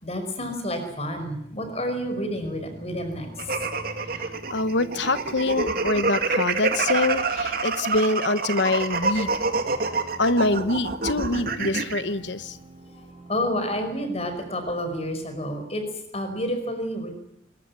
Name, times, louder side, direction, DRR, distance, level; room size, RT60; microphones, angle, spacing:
voice 1, 0.0-3.3 3.6-3.7 9.6-9.7 12.9-15.8 16.1-17.1, equal, 35° left, 7 dB, 5.3 m, -29 dB
sound 1, 2.1-15.2, right 1 dB, 30° right, 4.7 m, -47 dB
sound 2, 3.4-12.0, right 3 dB, 50° right, 2.3 m, -27 dB
voice 2, 4.5-9.3 10.2-12.6, left 2 dB, 65° left, 13 dB, 1.1 m, -25 dB
21.0 x 20.0 x 9.8 m, 0.75 s
head